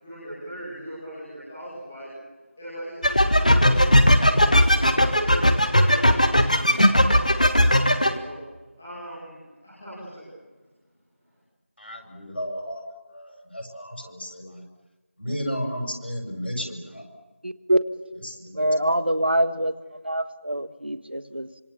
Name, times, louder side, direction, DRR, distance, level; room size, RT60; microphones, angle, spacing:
voice 1, 0.0-2.1 2.6-5.5 5.8-8.4 8.8-10.3, right 1 dB, 5° left, -11 dB, 2.4 m, -39 dB
sound 1, 3.0-8.1, equal, 35° left, 1.5 m, -18 dB
voice 2, 11.8-12.8 13.1-14.6 15.2-17.0 18.2-18.6, equal, 55° left, 3 dB, 7.0 m, -33 dB
voice 3, 17.4-17.8 18.5-19.7 20.0-21.5, right 1 dB, 50° right, 11 dB, 1.6 m, -24 dB
26.0 x 25.0 x 7.1 m, 1.2 s
figure-of-eight pair, 180°, 7 cm